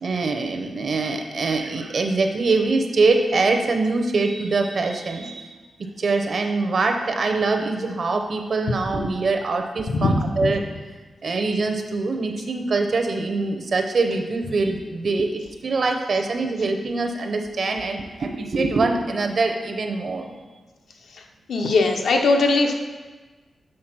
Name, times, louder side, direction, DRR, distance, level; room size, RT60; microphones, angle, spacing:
voice 1, 0.0-5.5 6.0-10.6 11.2-20.3, right 3 dB, 45° right, 4 dB, 0.6 m, -23 dB
voice 2, 9.9-10.5 21.5-22.7, left 3 dB, 80° left, 3 dB, 0.7 m, -20 dB
6.5 x 3.8 x 5.9 m, 1.3 s
wide cardioid pair, 180°, 0 cm